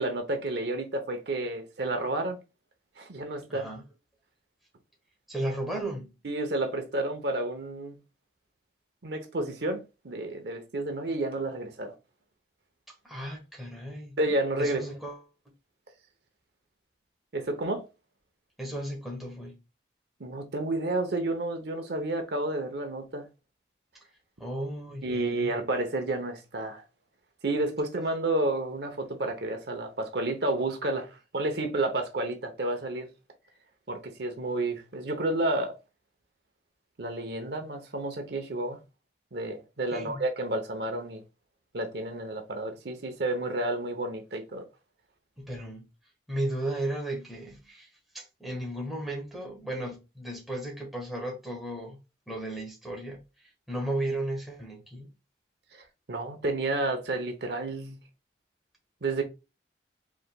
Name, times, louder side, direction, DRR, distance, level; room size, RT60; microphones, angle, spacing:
voice 1, 0.0-2.4 3.0-3.6 6.2-7.9 9.0-12.0 14.2-14.8 17.3-17.9 20.2-23.3 25.0-26.8 27.4-33.1 33.9-35.7 37.0-38.8 39.3-41.2 41.7-44.6 55.7-58.0 59.0-59.2, right 2 dB, 65° right, 0.9 m, -30 dB
voice 2, 3.5-3.8 5.3-6.1 12.9-14.1 14.6-15.5 18.6-19.6 24.4-25.5 39.9-40.2 45.4-45.8 46.3-47.9 48.1-52.0 52.3-55.1, right 1 dB, ahead, 1.4 m, -35 dB
4.9 x 3.9 x 2.3 m
head